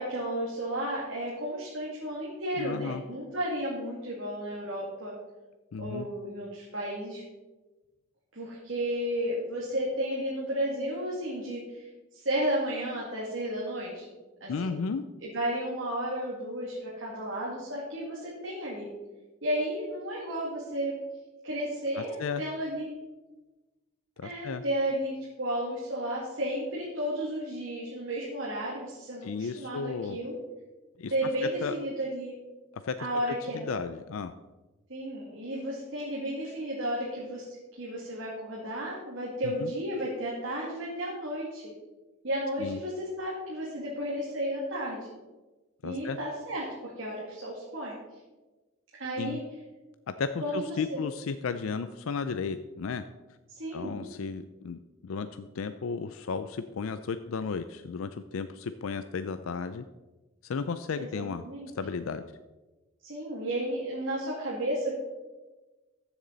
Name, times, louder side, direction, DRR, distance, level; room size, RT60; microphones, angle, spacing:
voice 1, 0.0-5.1 5.8-7.2 8.3-11.9 12.1-14.1 14.4-14.8 15.2-18.9 19.4-20.9 21.4-22.9 24.2-30.4 31.1-32.3 33.0-33.7 34.9-37.4 37.7-41.6 42.2-45.1 45.8-48.0 49.0-49.4 50.4-51.0 53.5-54.1 61.0-61.7 63.0-65.0, right 1 dB, 65° right, -5 dB, 2.3 m, -33 dB
voice 2, 2.6-3.0 5.7-6.1 14.5-15.0 22.0-22.4 24.2-24.6 29.2-30.2 31.0-31.1 31.6-31.7 32.8-34.3 39.4-39.7 42.6-42.8 45.8-46.2 49.2-49.4 50.1-53.0 53.7-59.8 60.4-61.4 61.8-62.2, left 5 dB, 80° left, 10 dB, 0.4 m, -34 dB
14.0 x 7.3 x 4.0 m, 1.2 s
head